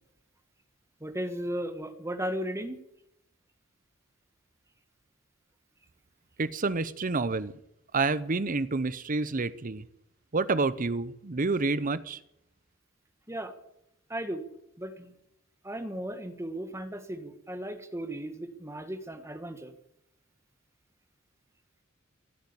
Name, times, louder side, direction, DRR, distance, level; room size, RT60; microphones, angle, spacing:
voice 1, 1.0-2.8 13.3-13.5 14.1-14.4 14.8-15.2 15.6-19.7, right 1 dB, 15° right, 8 dB, 1.5 m, -36 dB
voice 2, 6.4-7.5 7.9-9.8 10.3-12.2, right 3 dB, 40° right, 16 dB, 0.8 m, -28 dB
16.0 x 8.8 x 9.8 m, 0.79 s
head